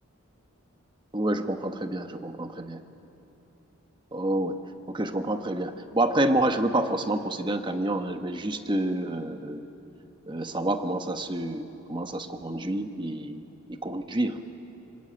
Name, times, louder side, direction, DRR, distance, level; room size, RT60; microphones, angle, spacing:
voice 1, 1.1-2.8 4.1-4.6 4.9-9.6 10.3-13.4 13.8-14.4, right 1 dB, 20° right, 8 dB, 1.1 m, -28 dB
26.0 x 23.0 x 8.8 m, 3.0 s
head